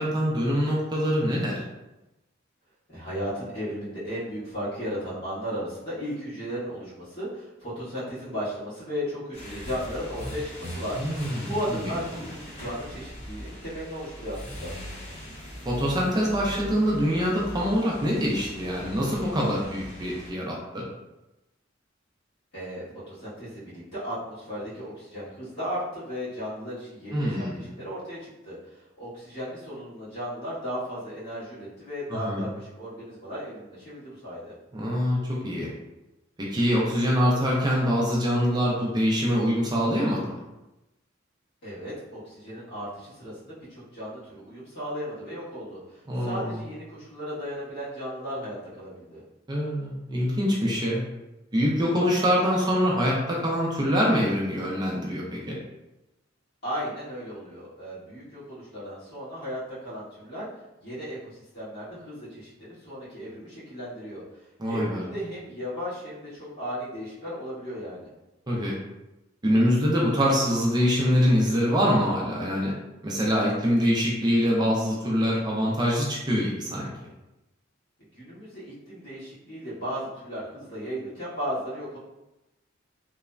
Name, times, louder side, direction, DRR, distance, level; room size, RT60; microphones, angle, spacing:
voice 1, 0.0-1.6 11.0-11.5 11.8-11.9 15.7-20.8 27.1-27.6 32.1-32.4 34.7-35.7 36.4-40.4 46.1-46.5 49.5-51.0 51.5-55.6 64.6-65.0 68.5-68.7 69.4-72.7 73.0-76.9, equal, 20° right, -4 dB, 0.4 m, -24 dB
voice 2, 2.9-14.7 22.5-34.5 41.6-49.2 56.6-60.5 60.8-68.1 78.1-82.0, equal, 55° left, -11 dB, 1.5 m, -35 dB
sound 1, 9.3-20.3, equal, 35° left, 1.1 m, -40 dB
3.1 x 2.0 x 2.4 m, 0.98 s
head